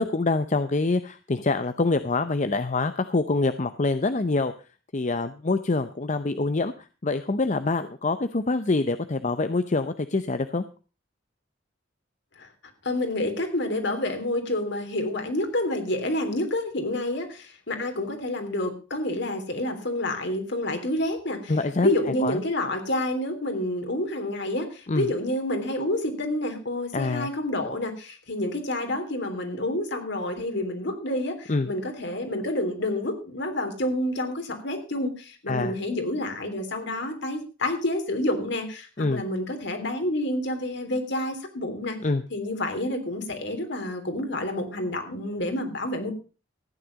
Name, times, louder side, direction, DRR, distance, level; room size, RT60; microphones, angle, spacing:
voice 1, 0.0-4.5 4.9-6.7 7.0-10.6 21.5-21.9 22.2-22.4 24.9-25.1 26.9-27.3 31.5-31.7 35.5-35.8 39.0-39.2 42.0-42.2, left 3 dB, 35° left, 11 dB, 0.6 m, -25 dB
voice 2, 12.8-21.5 21.8-42.0 42.3-46.1, left 1 dB, 60° left, 6 dB, 3.3 m, -28 dB
15.0 x 9.8 x 5.2 m, 0.34 s
head